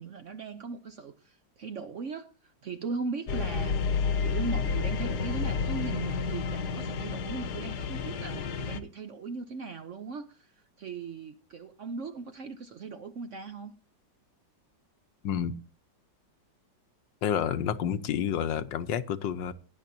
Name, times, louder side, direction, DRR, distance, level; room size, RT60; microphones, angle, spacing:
voice 1, 0.0-3.7 4.2-13.7, right 4 dB, 60° right, 0.8 m, -38 dB
sound 1, 3.3-8.8, left 5 dB, 65° left, 1.4 m, -30 dB
voice 2, 15.2-15.6 17.2-19.5, left 9 dB, 80° left, 1.5 m, -29 dB
17.5 x 9.8 x 2.7 m
omnidirectional pair, 1.9 m